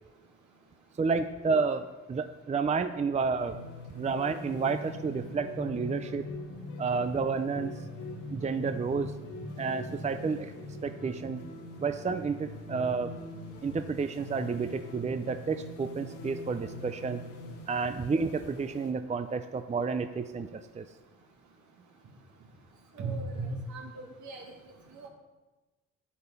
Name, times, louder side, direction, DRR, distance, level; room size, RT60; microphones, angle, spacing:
voice 1, 1.0-3.6 3.9-6.2 6.8-7.7 8.3-9.1 9.6-10.5 10.8-11.4 11.8-13.1 13.6-17.2 17.7-20.9, right 5 dB, 25° right, 9 dB, 0.5 m, -30 dB
sound 1, 3.4-18.9, left 2 dB, 85° left, 1.8 m, -42 dB
voice 2, 22.9-24.6 24.9-25.1, right 2 dB, 70° right, 1 dB, 2.3 m, -37 dB
10.0 x 8.4 x 5.5 m, 1.2 s
cardioid pair, 90°, 30 cm